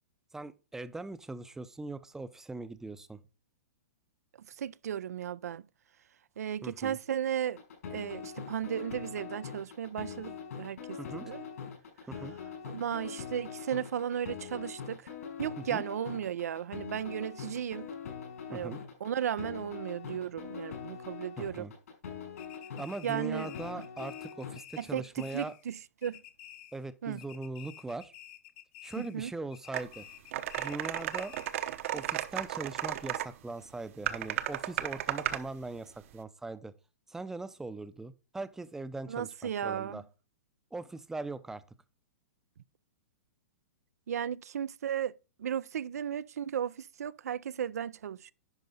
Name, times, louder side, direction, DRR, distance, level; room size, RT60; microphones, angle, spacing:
voice 1, 0.3-3.2 6.6-7.0 11.0-11.3 12.1-12.3 15.7-15.8 18.5-18.8 21.4-21.7 22.8-25.5 26.7-28.1 28.8-30.1 30.6-31.3 31.9-36.7 37.1-40.0 40.7-41.6, right 3 dB, 5° right, 0.5 m, -40 dB
voice 2, 4.6-5.6 6.4-7.6 7.9-11.4 12.7-15.1 15.4-17.9 18.5-21.7 23.0-23.5 24.8-26.2 27.0-27.2 29.0-29.3 39.1-40.0 44.1-45.1 45.4-48.3, right 9 dB, 80° right, 0.4 m, -35 dB
sound 1, 7.5-24.6, left 7 dB, 75° left, 4.6 m, -43 dB
sound 2, 22.4-25.7 26.0-26.9 27.2-29.2 29.5-31.7, left 13 dB, 45° left, 0.9 m, -51 dB
sound 3, 29.7-29.8 30.3-33.3 34.1-35.4, right 12 dB, 55° right, 0.9 m, -34 dB
10.5 x 5.3 x 4.0 m
hypercardioid pair, 130°, 8 cm